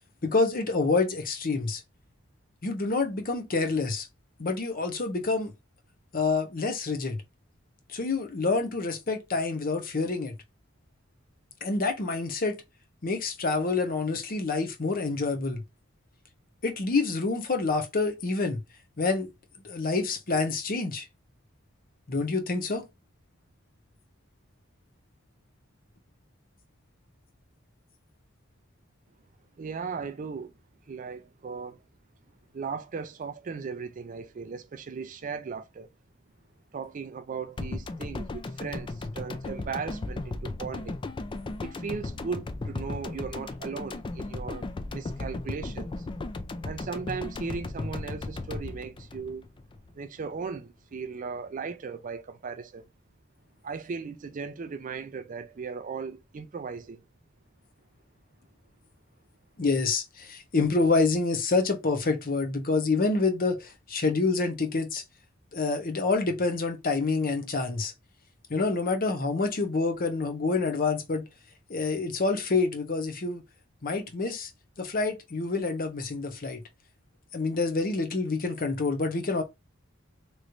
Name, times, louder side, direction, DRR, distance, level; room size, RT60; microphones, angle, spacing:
voice 1, 0.2-1.8 2.6-4.1 4.4-5.5 6.1-7.2 7.9-10.3 11.6-12.6 13.0-15.6 16.6-18.6 19.0-19.3 19.6-21.1 22.1-22.8 59.6-65.0 65.5-67.9 68.5-71.2 71.7-73.4 73.8-74.5 74.8-76.6 77.3-79.4, left 3 dB, 45° left, 0.8 m, -27 dB
voice 2, 29.6-30.5 30.9-31.8 32.5-35.9 36.7-41.0 41.6-46.1 46.6-49.5 50.0-52.9 53.6-57.0, right 5 dB, 40° right, 0.4 m, -37 dB
sound 1, 37.6-49.9 50.2-50.3, left 2 dB, 25° left, 0.3 m, -36 dB
3.1 x 3.1 x 2.5 m
head